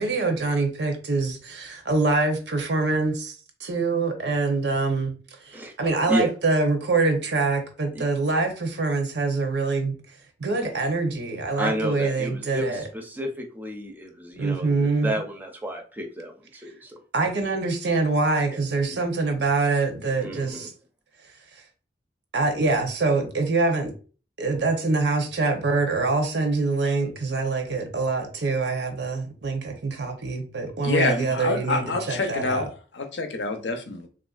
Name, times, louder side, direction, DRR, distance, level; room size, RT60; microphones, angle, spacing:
voice 1, 0.0-5.1 5.4-9.9 10.4-12.8 14.4-15.1 17.1-20.7 22.3-23.9 24.4-32.7, right 3 dB, 70° right, 0.7 m, -25 dB
voice 2, 11.6-16.3 16.6-17.0 18.5-18.6 18.9-19.0 20.2-20.7, equal, 10° right, 0.5 m, -31 dB
voice 3, 30.8-32.7 32.9-34.1, left 3 dB, 85° left, 0.6 m, -27 dB
3.2 x 2.5 x 2.3 m
head